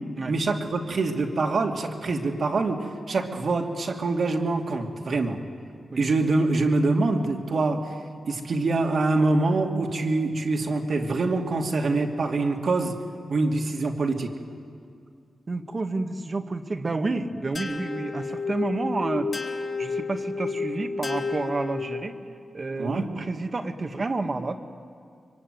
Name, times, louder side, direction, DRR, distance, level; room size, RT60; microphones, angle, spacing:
voice 1, 0.3-5.4 6.0-7.9 8.3-13.0 13.3-14.4 22.8-23.1, right 3 dB, 65° right, 2 dB, 2.7 m, -25 dB
voice 2, 15.5-22.2 22.5-24.6, right 3 dB, 45° right, 6 dB, 1.9 m, -30 dB
sound 1, 17.5-22.3, left 4 dB, 60° left, 2.5 m, -31 dB
24.5 x 23.5 x 9.5 m, 2.3 s
cardioid pair, 55°, 0 cm